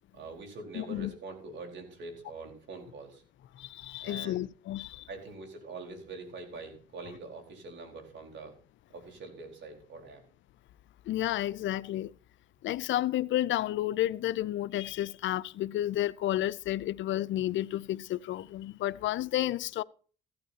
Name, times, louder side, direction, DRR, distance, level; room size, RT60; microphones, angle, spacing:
voice 1, 0.1-3.2 4.0-4.5 5.1-8.6 8.9-10.2, right 3 dB, 65° right, 4.3 m, -44 dB
voice 2, 0.7-1.1 3.6-5.1 11.1-12.1 12.6-19.8, left 13 dB, 75° left, 0.5 m, -31 dB
15.5 x 12.0 x 2.8 m
cardioid pair, 90°, 20 cm